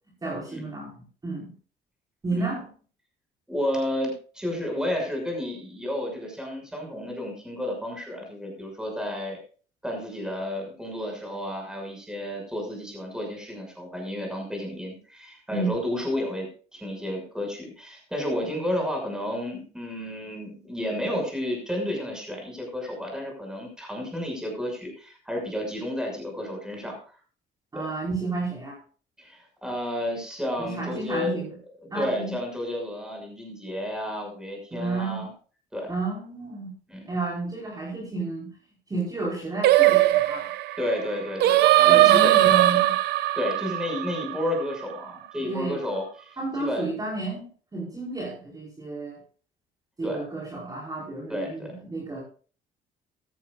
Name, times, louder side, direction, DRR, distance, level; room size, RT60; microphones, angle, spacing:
voice 1, 0.2-1.5 2.2-2.7 15.5-15.8 27.7-28.8 30.6-31.5 31.9-32.3 34.7-35.2 35.9-36.7 37.1-38.5 38.9-40.5 41.9-42.9 45.5-45.8 46.4-49.2 50.0-52.2, right 3 dB, 20° right, -4 dB, 4.9 m, -31 dB
voice 2, 3.5-9.4 9.8-27.0 27.7-27.9 29.2-31.4 31.9-35.3 35.7-35.9 36.9-37.1 40.8-42.8 43.3-46.9 50.0-50.2 51.3-51.7, left 1 dB, 5° right, 1 dB, 6.5 m, -31 dB
Singing, 39.6-44.9, right 15 dB, 80° right, 0.8 m, -20 dB
15.0 x 13.5 x 2.5 m, 0.39 s
cardioid pair, 110°, 17 cm